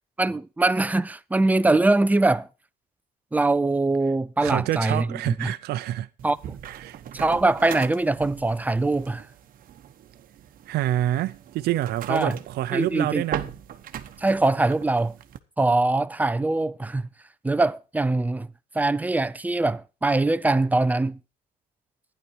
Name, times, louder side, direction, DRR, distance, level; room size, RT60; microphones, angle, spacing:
voice 1, 0.2-2.5 3.3-5.5 6.2-6.4 7.1-9.2 12.1-12.4 12.7-13.2 14.2-15.1 15.6-17.1 17.4-18.5 18.7-21.2, right 2 dB, 10° right, 0.6 m, -22 dB
voice 2, 4.4-6.1 6.6-7.0 10.7-13.4, right 14 dB, 70° right, 0.7 m, -27 dB
sound 1, 6.2-15.4, right 10 dB, 55° right, 1.1 m, -40 dB
12.0 x 10.0 x 4.7 m
cardioid pair, 110°, 17 cm